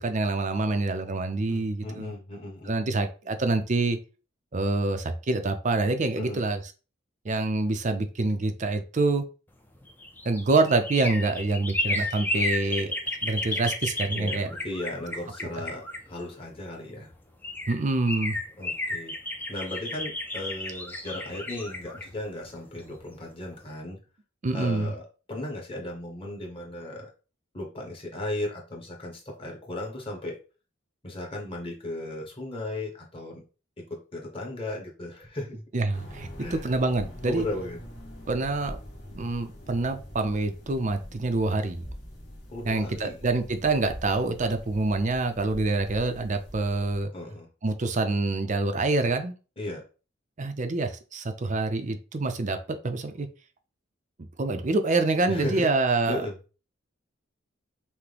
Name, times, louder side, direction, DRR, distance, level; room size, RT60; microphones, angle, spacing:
voice 1, 0.0-2.1 2.7-4.0 4.5-6.6 7.2-9.3 10.2-12.9 13.2-14.5 15.4-15.5 17.7-18.4 24.4-24.9 35.7-37.5 38.3-38.8 39.1-41.8 42.7-47.1 47.6-49.3 50.4-53.3 54.4-56.2, right 3 dB, 40° right, 8 dB, 0.5 m, -26 dB
voice 2, 1.5-2.7 6.2-6.4 14.1-17.1 18.6-19.1 19.5-24.0 24.5-25.0 25.3-27.1 27.5-30.4 31.0-33.4 33.8-35.6 36.4-36.7 37.2-37.8 42.5-43.2 47.1-47.5 49.6-49.8 55.2-56.4, left 1 dB, 25° left, -1 dB, 1.2 m, -36 dB
sound 1, 9.8-16.6 17.1-17.2 17.4-23.2 23.5-23.6, left 1 dB, 10° left, 0.5 m, -33 dB
sound 2, 35.9-47.0, equal, 55° left, 1.7 m, -44 dB
5.8 x 2.1 x 3.4 m, 0.34 s
head